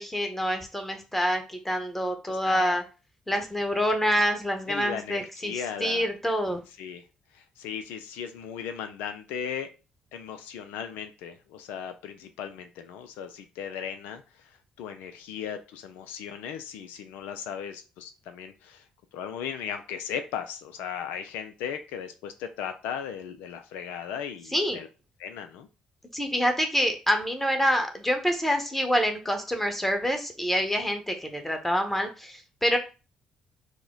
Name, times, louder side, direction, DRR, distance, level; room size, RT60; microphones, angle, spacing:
voice 1, 0.0-2.8 3.3-6.6 24.5-24.8 26.1-32.8, equal, 5° left, 5 dB, 1.2 m, -26 dB
voice 2, 2.3-2.8 4.7-6.1 6.8-7.0 7.3-9.7 10.1-14.2 14.8-18.8 19.1-24.9 25.2-25.7, left 8 dB, 75° left, 7 dB, 0.4 m, -37 dB
4.8 x 2.1 x 3.9 m, 0.32 s
hypercardioid pair, 50°, 3 cm